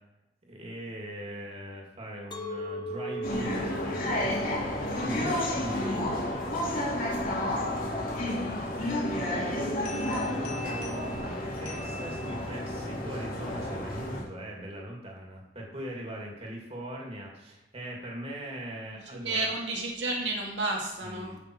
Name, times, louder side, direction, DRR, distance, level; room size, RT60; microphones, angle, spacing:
voice 1, 0.4-4.4 4.9-6.2 9.1-19.5 21.0-21.4, equal, 35° right, -1 dB, 2.4 m, -40 dB
Chink clink, 2.3-7.5, equal, 25° left, 0.8 m, -40 dB
sound 1, 3.2-14.2, left 1 dB, 50° left, 3.1 m, -31 dB
voice 2, 9.2-9.6 19.1-21.3, right 2 dB, 75° right, -1 dB, 2.1 m, -32 dB
sound 2, 9.9-12.8, left 1 dB, 85° left, 2.8 m, -45 dB
13.5 x 6.3 x 4.6 m, 0.88 s
head